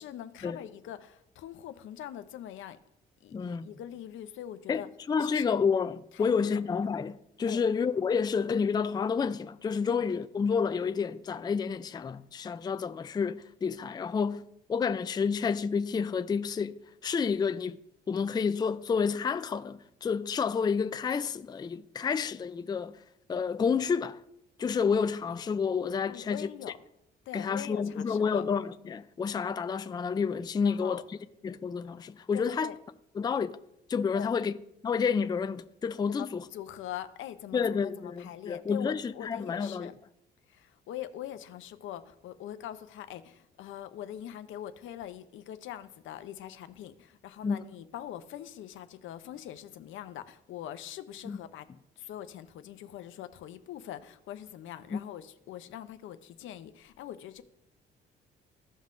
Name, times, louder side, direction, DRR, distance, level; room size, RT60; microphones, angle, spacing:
voice 1, 0.0-2.8 3.2-4.9 5.2-5.6 6.1-6.6 7.5-7.6 9.9-10.0 26.1-26.7 27.3-28.4 30.6-31.0 32.3-32.8 34.1-34.3 36.1-39.9 40.5-51.7 52.0-57.4, left 11 dB, 80° left, 0.6 m, -43 dB
voice 2, 3.3-3.7 4.7-4.8 5.1-17.8 18.1-23.0 23.3-24.2 24.6-26.5 27.3-31.0 31.4-32.7 33.2-33.6 33.9-34.5 34.8-36.4 37.5-39.9 47.4-47.6 51.3-51.4 54.9-55.0, left 6 dB, 20° left, 0.3 m, -29 dB
15.0 x 5.4 x 2.5 m
cardioid pair, 90°, 20 cm